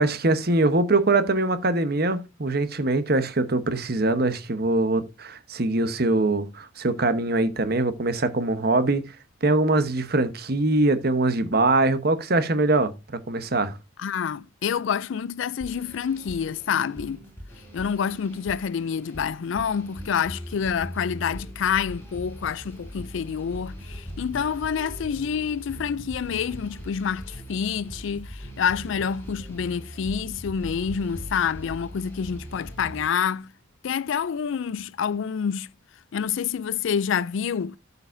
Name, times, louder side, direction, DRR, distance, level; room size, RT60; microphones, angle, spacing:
voice 1, 0.0-9.0 9.4-12.9 13.3-13.8, right 2 dB, 50° right, 1.0 m, -23 dB
voice 2, 14.0-17.2 17.7-33.5 33.8-35.7 36.1-37.8, left 7 dB, 70° left, 0.4 m, -27 dB
sound 1, 15.6-33.1, equal, 10° left, 4.6 m, -40 dB
13.0 x 6.9 x 2.6 m
head